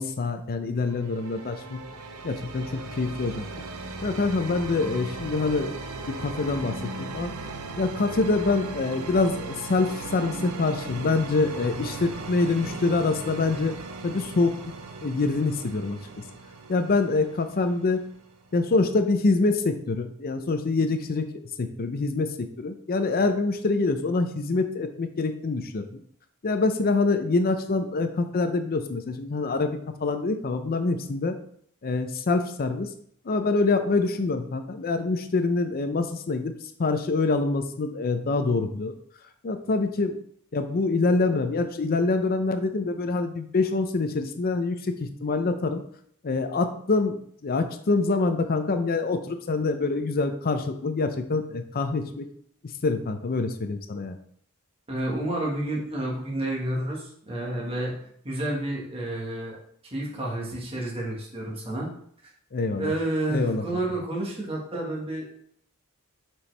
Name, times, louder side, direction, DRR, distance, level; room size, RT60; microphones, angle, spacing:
voice 1, 0.0-1.8 2.2-3.5 4.0-5.7 6.1-7.3 7.8-13.8 14.0-14.5 15.0-16.0 16.7-18.0 18.5-21.3 21.6-26.0 26.4-31.4 31.8-32.9 33.3-38.9 39.4-40.2 40.5-45.8 46.2-47.2 47.4-52.3 52.8-54.2 62.5-62.9 63.3-63.6, left 3 dB, 45° left, 7 dB, 0.5 m, -25 dB
sound 1, 0.8-18.5, right 3 dB, 85° right, 0.7 m, -38 dB
voice 2, 54.9-58.0 58.2-59.6 59.9-61.9 62.8-65.2, right 1 dB, 25° right, -3 dB, 1.5 m, -30 dB
6.9 x 4.6 x 3.3 m, 0.64 s
head